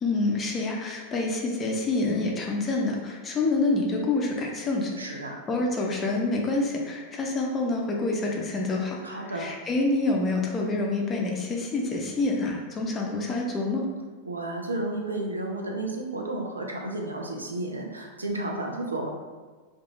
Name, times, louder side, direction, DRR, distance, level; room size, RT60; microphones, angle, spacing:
voice 1, 0.0-5.2 5.5-13.8, left 2 dB, 25° left, -1 dB, 0.5 m, -27 dB
voice 2, 5.0-5.4 9.0-9.5 14.2-19.1, right 2 dB, 80° right, 0 dB, 0.4 m, -32 dB
2.4 x 2.2 x 2.9 m, 1.4 s
figure-of-eight pair, 90°, 0 cm